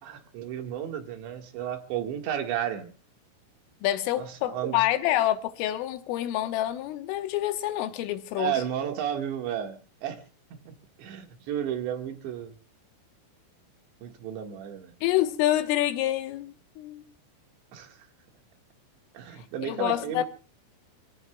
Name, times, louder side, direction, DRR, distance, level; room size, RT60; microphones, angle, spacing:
voice 1, 0.0-2.9 4.2-4.8 8.4-10.2 10.7-10.8 11.0-12.5 14.0-14.9 17.7-17.9 19.2-20.2, right 10 dB, 65° right, 3.6 m, -33 dB
voice 2, 3.8-8.6 15.0-17.0 19.6-20.2, left 14 dB, 80° left, 3.6 m, -27 dB
28.5 x 17.0 x 2.3 m
omnidirectional pair, 5.9 m